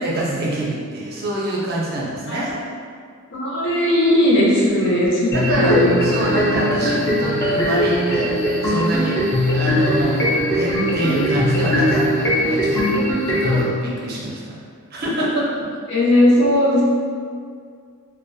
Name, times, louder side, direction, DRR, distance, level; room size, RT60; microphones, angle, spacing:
voice 1, 0.0-2.6 5.3-9.2 9.5-12.9 13.3-14.6 14.9-15.5, right 1 dB, 45° right, -5 dB, 0.5 m, -25 dB
voice 2, 3.3-5.9 12.9-13.0 15.9-16.8, left 1 dB, 55° left, -6 dB, 0.6 m, -17 dB
sound 1, 5.3-13.6, equal, 10° left, 0.4 m, -20 dB
2.4 x 2.2 x 2.5 m, 2.1 s
head